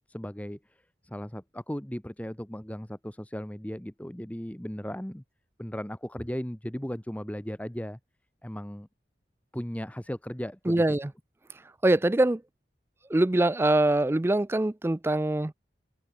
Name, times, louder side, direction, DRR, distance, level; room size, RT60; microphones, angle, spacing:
voice 1, 0.1-5.2 5.6-8.0 8.4-8.9 9.5-11.0, equal, 10° left, 1.0 m, -36 dB
voice 2, 10.7-11.1 11.8-12.4 13.1-15.5, right 1 dB, 15° right, 0.3 m, -23 dB
head